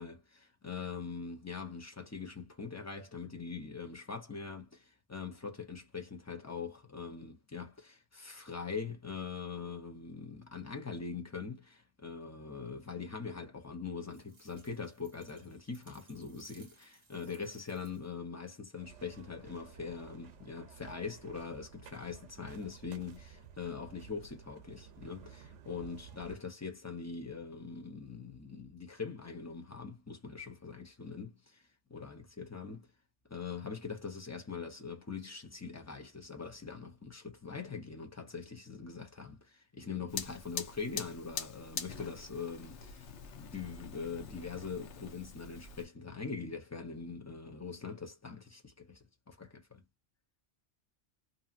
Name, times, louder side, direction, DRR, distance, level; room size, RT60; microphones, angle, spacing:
voice 1, 0.0-31.6 31.9-32.9 33.3-49.8, left 5 dB, 25° left, 0.4 m, -42 dB
sound 1, 14.1-18.3, right 3 dB, 35° right, 1.1 m, -63 dB
sound 2, 18.8-26.3, right 8 dB, 80° right, 1.0 m, -54 dB
Fire, 40.1-45.9, left 6 dB, 75° left, 1.0 m, -44 dB
2.7 x 2.7 x 2.4 m
omnidirectional pair, 1.2 m